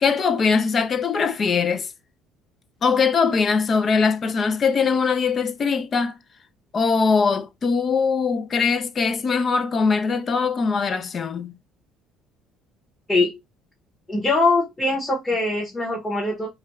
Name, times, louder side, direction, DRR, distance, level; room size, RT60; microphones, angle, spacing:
voice 1, 0.0-1.9 2.8-6.2 6.7-11.5, left 5 dB, 40° left, 0.4 m, -21 dB
voice 2, 14.1-16.5, left 2 dB, 15° left, 0.9 m, -22 dB
2.5 x 2.2 x 2.9 m
supercardioid pair, 90°, 0 cm